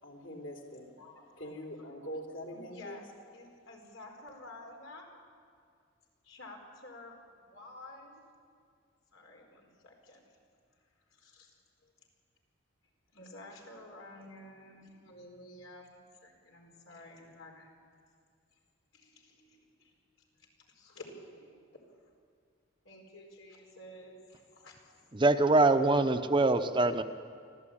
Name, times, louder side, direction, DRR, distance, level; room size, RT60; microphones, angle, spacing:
voice 1, 0.0-0.9 1.4-3.0, equal, 65° left, 3.6 m, -43 dB
voice 2, 2.5-3.1 3.3-5.1 6.2-8.3 9.1-10.4 11.1-11.5 11.8-11.9 13.1-17.7 18.9-19.9 20.4-21.6 21.9-22.0 22.8-24.7, left 1 dB, 85° left, 4.6 m, -51 dB
voice 3, 25.1-27.0, right 2 dB, 25° right, 0.8 m, -24 dB
24.5 x 15.0 x 8.7 m
head